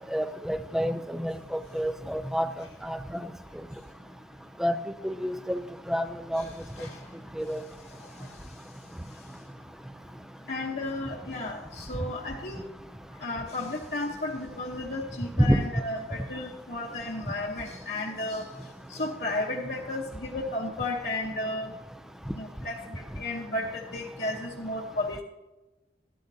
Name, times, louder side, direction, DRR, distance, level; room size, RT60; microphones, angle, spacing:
voice 1, 0.1-2.5 2.8-3.2 4.6-4.8 5.0-5.6 5.9-6.0 6.3-6.4 7.4-7.6 15.4-15.6, equal, 5° right, 11 dB, 0.3 m, -27 dB
voice 2, 6.3-7.1 7.8-9.4 10.4-12.7 13.1-21.7 22.3-25.2, left 2 dB, 60° left, -3 dB, 0.9 m, -34 dB
13.5 x 11.5 x 2.7 m, 1.1 s
head